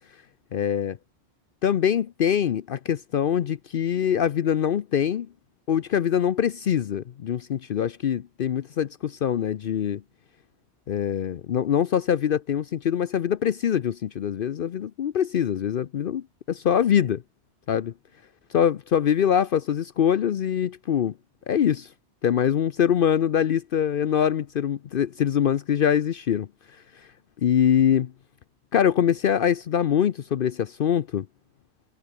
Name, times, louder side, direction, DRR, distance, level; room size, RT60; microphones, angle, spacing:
voice 1, 0.5-1.0 1.6-5.3 5.7-10.0 10.9-17.2 17.7-17.9 18.5-21.1 21.5-21.9 22.2-26.5 27.4-28.1 28.7-31.3, left 9 dB, 60° left, 0.8 m, -23 dB
omnidirectional pair, 1.1 m